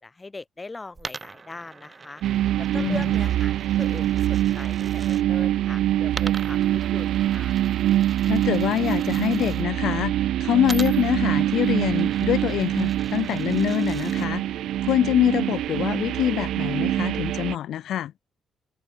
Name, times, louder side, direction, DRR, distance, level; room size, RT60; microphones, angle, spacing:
voice 1, 0.0-2.2 2.6-7.5, left 3 dB, 15° left, 3.6 m, -40 dB
Coin (dropping), 0.9-5.2 6.1-9.6 10.6-14.3, right 4 dB, 25° right, 2.2 m, -42 dB
sound 1, 2.2-17.6, right 13 dB, 80° right, 2.3 m, -24 dB
voice 2, 8.3-14.4 14.8-18.1, left 11 dB, 70° left, 1.6 m, -25 dB
cardioid pair, 150°, 0 cm